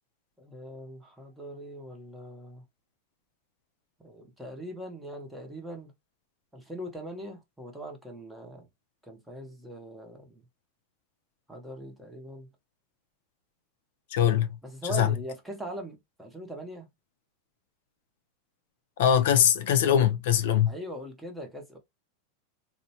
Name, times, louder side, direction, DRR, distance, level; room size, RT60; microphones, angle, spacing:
voice 1, 0.4-2.6 4.0-5.9 6.5-8.7 9.0-10.4 11.5-12.5 14.6-16.9 20.7-21.8, right 1 dB, 5° right, 0.7 m, -41 dB
voice 2, 14.1-14.6 14.9-15.1 19.0-20.7, left 9 dB, 70° left, 0.5 m, -22 dB
3.9 x 2.1 x 2.7 m
supercardioid pair, 165°, 0 cm